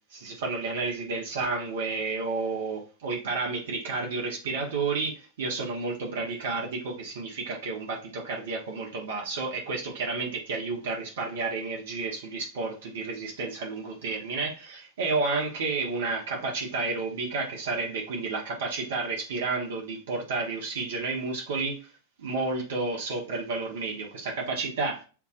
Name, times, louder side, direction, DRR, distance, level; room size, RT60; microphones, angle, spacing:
voice 1, 0.1-21.8 22.2-25.0, right 3 dB, 60° right, -1 dB, 1.2 m, -31 dB
7.1 x 2.7 x 2.5 m, 0.35 s
figure-of-eight pair, 90°, 0 cm